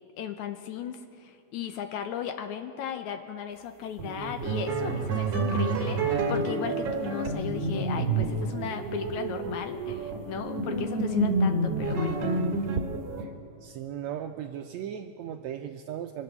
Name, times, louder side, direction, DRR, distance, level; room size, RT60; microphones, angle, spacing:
voice 1, 0.2-12.2, left 8 dB, 75° left, 8 dB, 1.9 m, -36 dB
sound 1, 4.0-13.2, right 2 dB, 60° right, 2.3 m, -29 dB
voice 2, 13.6-16.2, right 9 dB, 80° right, 5 dB, 1.6 m, -37 dB
24.5 x 8.5 x 6.7 m, 2.6 s
omnidirectional pair, 3.7 m